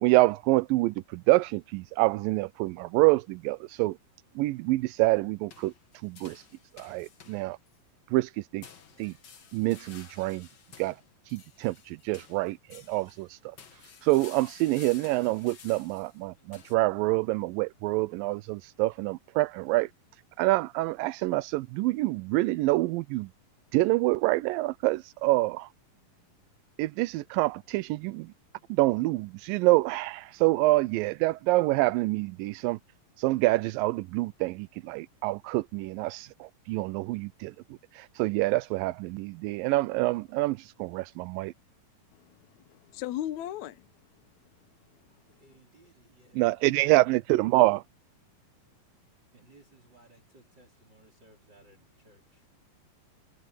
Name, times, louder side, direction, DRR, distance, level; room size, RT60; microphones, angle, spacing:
voice 1, 0.0-4.0 4.4-5.7 6.0-6.5 6.7-7.6 8.1-8.7 9.0-9.1 9.5-10.5 10.8-11.0 11.3-19.9 20.4-23.3 23.7-25.7 26.8-28.3 28.7-32.8 33.2-37.5 37.9-41.5 46.3-47.8, right 20 dB, 85° right, 2.3 m, -26 dB
sound 1, 5.5-7.8 8.6-13.3 13.6-16.8, left 6 dB, 45° left, 1.6 m, -52 dB
voice 2, 42.1-43.9, left 12 dB, 75° left, 1.9 m, -37 dB
voice 3, 45.3-46.9 49.3-52.5, right 2 dB, 30° right, 4.5 m, -60 dB
omnidirectional pair, 4.0 m